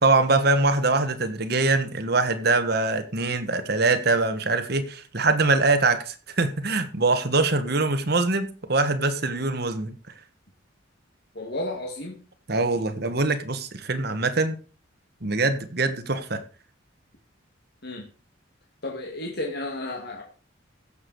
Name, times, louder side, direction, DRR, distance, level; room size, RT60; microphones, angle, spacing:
voice 1, 0.0-9.9 12.5-14.6 15.2-16.4, right 3 dB, 55° right, 1.4 m, -23 dB
voice 2, 11.4-12.2 17.8-18.1 18.8-20.2, left 2 dB, 55° left, 2.0 m, -32 dB
15.5 x 7.1 x 4.7 m
head